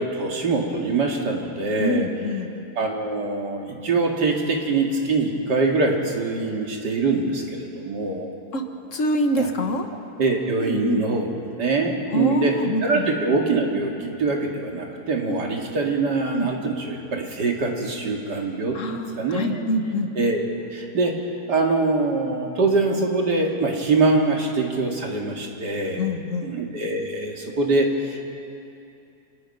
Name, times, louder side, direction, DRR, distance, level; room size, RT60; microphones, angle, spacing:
voice 1, 0.0-2.1 2.8-8.3 9.4-9.5 10.2-11.3 11.6-12.5 12.8-18.8 19.2-19.6 20.2-21.2 21.5-26.1 26.4-28.3, right 3 dB, 90° right, 0 dB, 2.8 m, -23 dB
voice 2, 1.8-2.5 8.5-8.6 8.9-9.9 10.6-11.0 12.1-13.0 15.3-15.5 16.3-16.5 18.7-20.1 26.0-26.5, left 1 dB, 50° left, 5 dB, 1.7 m, -25 dB
27.0 x 19.5 x 5.5 m, 2.7 s
omnidirectional pair, 1.8 m